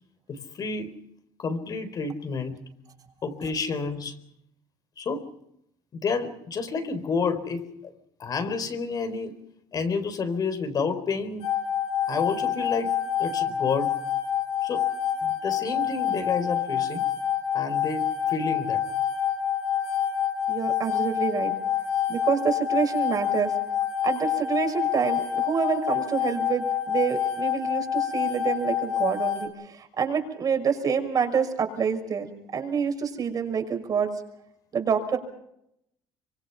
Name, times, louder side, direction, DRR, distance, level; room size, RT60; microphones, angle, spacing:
voice 1, 0.3-1.0 1.4-2.6 3.2-4.2 5.0-5.3 5.9-7.9 8.2-9.3 9.7-11.5 12.1-14.0 14.6-14.9 15.2-17.1 17.5-18.8 27.8-28.0, left 4 dB, 45° left, 8 dB, 4.1 m, -30 dB
sound 1, 11.4-29.5, left 9 dB, 80° left, 5.6 m, -27 dB
voice 2, 20.5-21.5 22.1-23.5 24.0-29.5 30.0-34.1 34.7-35.2, right 6 dB, 40° right, 5 dB, 6.0 m, -27 dB
25.5 x 24.5 x 5.8 m, 0.76 s
cardioid pair, 100°, 9 cm